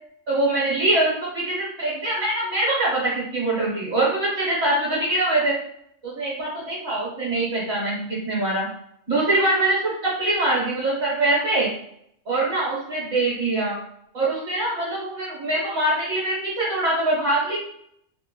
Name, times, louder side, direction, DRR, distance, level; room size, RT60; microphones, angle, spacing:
voice 1, 0.3-5.5 6.0-8.7 9.1-11.7 12.2-13.8 14.1-17.6, right 2 dB, 65° right, -8 dB, 1.6 m, -23 dB
3.3 x 2.2 x 3.7 m, 0.70 s
omnidirectional pair, 1.3 m